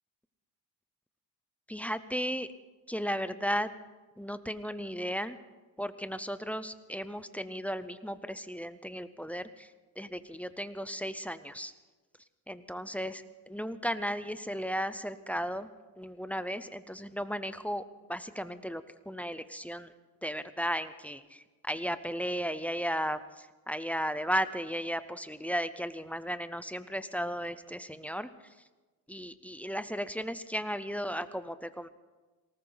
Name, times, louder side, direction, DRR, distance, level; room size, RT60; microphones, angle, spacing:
voice 1, 1.7-2.5 2.9-3.7 4.2-5.4 5.8-9.7 10.0-11.7 12.5-15.7 16.0-17.8 18.1-19.9 20.2-21.2 21.6-28.3 29.1-31.9, equal, 5° left, 13 dB, 0.5 m, -35 dB
19.0 x 18.5 x 4.0 m, 1.2 s
cardioid pair, 125°, 47 cm